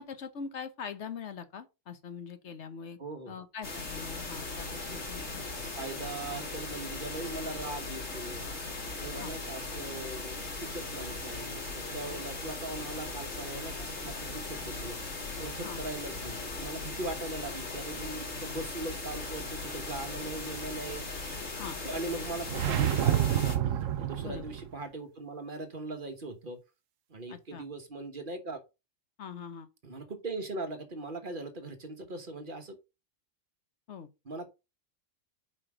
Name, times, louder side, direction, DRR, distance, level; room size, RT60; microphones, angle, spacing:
voice 1, 0.0-3.0 3.3-5.5 9.2-9.3 15.6-15.8 21.6-21.8 24.2-24.5 27.3-27.7 29.2-29.7 33.9-34.1, left 6 dB, 65° left, 1.2 m, -42 dB
voice 2, 3.0-3.4 4.7-8.5 9.0-21.4 21.8-26.6 27.1-28.6 29.8-32.8 34.2-34.4, right 2 dB, 45° right, 1.3 m, -40 dB
sound 1, 3.6-23.6, left 3 dB, 85° left, 2.6 m, -38 dB
sound 2, 22.4-24.7, right 11 dB, 85° right, 1.1 m, -28 dB
5.7 x 5.2 x 4.7 m
omnidirectional pair, 1.3 m